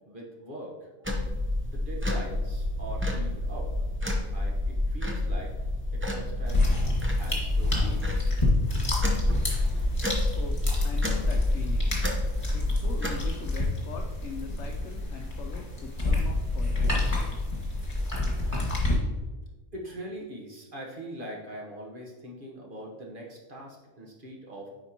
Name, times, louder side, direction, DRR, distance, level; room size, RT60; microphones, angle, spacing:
voice 1, 0.1-1.1 1.6-3.7 4.3-5.5 5.9-6.7 7.1-8.1 19.7-24.7, right 1 dB, 40° right, -2 dB, 1.3 m, -42 dB
sound 1, 1.0-13.3, left 1 dB, 10° right, 0.6 m, -29 dB
sound 2, 6.4-18.9, left 2 dB, 25° left, 1.8 m, -29 dB
voice 2, 10.3-12.0 12.5-17.0, left 5 dB, 65° left, 1 dB, 0.9 m, -42 dB
8.6 x 4.9 x 2.9 m, 1.2 s
omnidirectional pair, 1.4 m